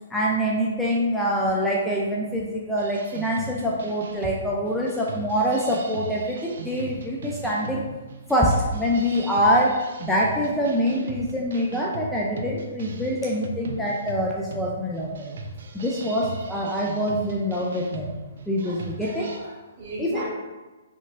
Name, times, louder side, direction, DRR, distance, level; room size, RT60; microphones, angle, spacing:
voice 1, 0.1-7.8 8.3-9.8 10.1-15.3 15.7-18.2 18.5-19.3 20.0-20.3, equal, 5° left, -4 dB, 0.4 m, -25 dB
sound 1, 2.8-19.4, right 3 dB, 65° right, 0.5 m, -39 dB
voice 2, 18.6-20.3, right 1 dB, 45° right, -5 dB, 1.4 m, -37 dB
3.8 x 3.6 x 2.5 m, 1.2 s
hypercardioid pair, 135°, 0 cm